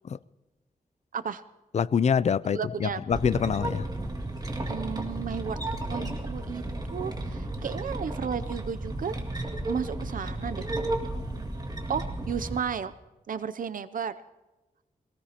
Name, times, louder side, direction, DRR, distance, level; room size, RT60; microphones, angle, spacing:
voice 1, 1.1-1.4 2.5-3.0 4.7-5.6 5.8-6.6 6.9-10.7 11.9-12.9 13.3-14.1, right 7 dB, 70° right, 0.5 m, -33 dB
voice 2, 1.7-3.9, left 7 dB, 50° left, 0.4 m, -25 dB
sound 1, 3.1-12.6, right 1 dB, 25° right, 2.2 m, -33 dB
24.5 x 18.5 x 2.9 m
wide cardioid pair, 95°, 15 cm